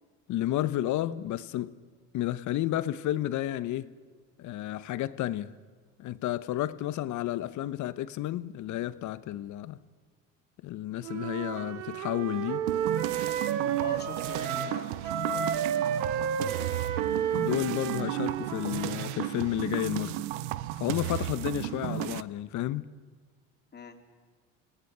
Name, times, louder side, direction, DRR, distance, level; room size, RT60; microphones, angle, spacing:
voice 1, 0.3-1.7 2.1-3.9 4.4-5.5 6.0-9.8 10.6-12.6 17.3-20.2 20.8-22.9, left 13 dB, 55° left, 1.0 m, -31 dB
Wind instrument woodwind instrument, 11.0-14.8 15.0-19.0, right 8 dB, 65° right, 2.0 m, -31 dB
sound 1, 12.7-22.2, right 15 dB, 85° right, 0.7 m, -34 dB
voice 2, 13.8-16.8 23.7-24.0, left 5 dB, 30° left, 3.2 m, -45 dB
27.5 x 18.0 x 6.8 m
supercardioid pair, 85°, 35 cm